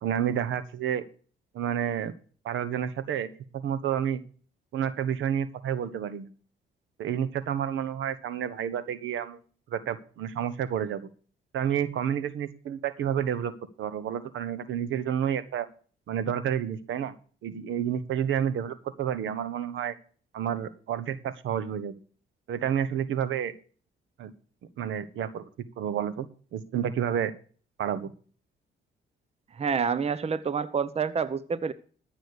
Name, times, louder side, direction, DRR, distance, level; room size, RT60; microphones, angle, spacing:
voice 1, 0.0-1.0 1.5-2.1 2.4-3.3 3.5-4.2 4.7-6.3 7.0-9.4 9.7-11.1 11.5-13.5 13.8-15.7 16.1-17.1 17.4-19.9 20.3-22.0 22.5-23.5 24.2-24.3 24.8-25.4 25.8-27.3 27.8-28.1, right 9 dB, 75° right, 13 dB, 1.2 m, -30 dB
voice 2, 29.6-31.7, right 6 dB, 30° right, 15 dB, 0.8 m, -28 dB
14.0 x 6.4 x 6.7 m, 0.42 s
cardioid pair, 90°, 20 cm